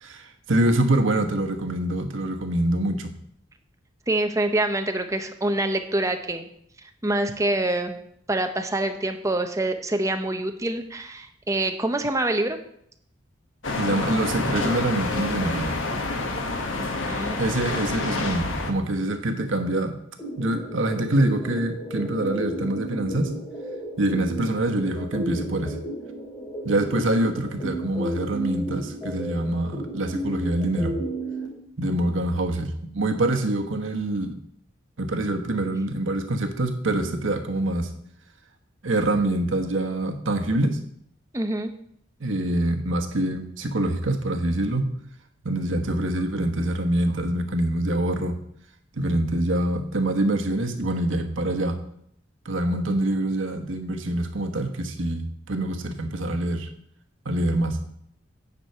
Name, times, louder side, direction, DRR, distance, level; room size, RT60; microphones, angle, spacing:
voice 1, 0.0-3.1 13.8-15.7 17.4-20.0 20.4-23.3 24.0-25.8 26.6-31.0 31.8-34.4 35.0-37.9 38.8-40.8 42.2-44.9 45.4-48.3 48.9-51.8 52.4-56.7 57.2-57.8, right 1 dB, 85° right, 5 dB, 1.2 m, -25 dB
voice 2, 4.1-6.4 7.0-8.0 8.3-12.6 16.8-17.4 41.3-41.7, right 1 dB, 15° right, 6 dB, 0.7 m, -26 dB
sound 1, 13.6-18.7, left 2 dB, 80° left, 1.2 m, -28 dB
sound 2, 20.2-31.5, right 1 dB, 20° left, 2.7 m, -33 dB
9.7 x 4.6 x 6.7 m, 0.71 s
head